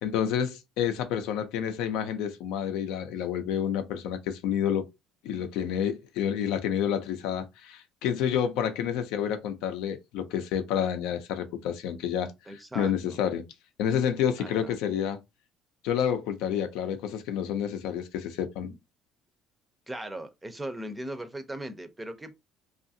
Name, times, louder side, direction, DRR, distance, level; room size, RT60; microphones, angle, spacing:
voice 1, 0.0-4.9 5.2-13.4 13.8-15.2 15.8-18.7, left 9 dB, 85° left, 0.5 m, -29 dB
voice 2, 12.5-13.2 14.4-14.7 19.9-22.4, right 1 dB, 10° right, 0.5 m, -38 dB
2.7 x 2.4 x 2.6 m
cardioid pair, 115°, 0 cm